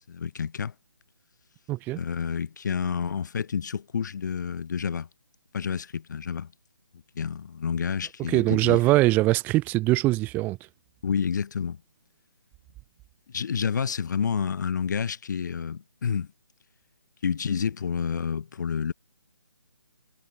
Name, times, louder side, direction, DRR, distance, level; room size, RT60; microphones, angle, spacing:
voice 1, 0.1-0.7 1.9-5.1 5.5-6.5 7.1-8.8 11.0-11.8 13.3-16.3 17.2-18.9, left 6 dB, 50° left, 3.2 m, -29 dB
voice 2, 1.7-2.0 8.3-10.6, right 19 dB, 15° right, 2.9 m, -22 dB
figure-of-eight pair, 155°, 13 cm